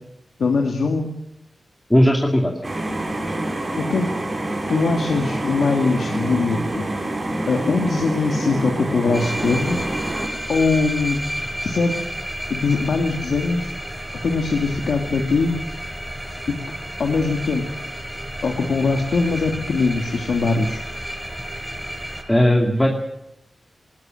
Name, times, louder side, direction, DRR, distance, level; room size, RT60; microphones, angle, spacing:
voice 1, 0.4-1.1 3.8-4.1 4.7-6.8 7.5-9.8 10.5-11.2 11.6-11.9 12.5-13.7 14.2-15.5 17.0-17.7 18.4-20.8, left 4 dB, 80° left, 2 dB, 2.5 m, -21 dB
voice 2, 1.9-2.5 22.3-22.9, equal, 10° left, 0 dB, 2.5 m, -16 dB
sound 1, 2.6-10.3, right 1 dB, 35° right, 5.5 m, -27 dB
sound 2, 9.1-22.2, equal, 5° right, 6.1 m, -31 dB
21.0 x 19.5 x 7.8 m, 0.85 s
wide cardioid pair, 115°, 0 cm